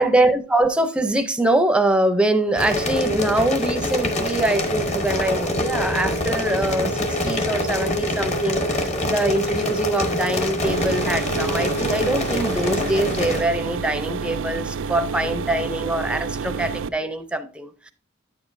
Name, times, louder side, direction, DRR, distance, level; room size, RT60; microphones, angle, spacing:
voice 1, 0.0-17.9, right 1 dB, 5° right, 0.5 m, -23 dB
sound 1, 2.6-13.4, left 2 dB, 35° left, 0.9 m, -25 dB
Wind instrument woodwind instrument, 2.7-12.4, right 2 dB, 60° left, 1.0 m, -31 dB
sound 2, 10.6-16.9, right 5 dB, 75° right, 0.4 m, -29 dB
9.3 x 7.2 x 2.6 m
head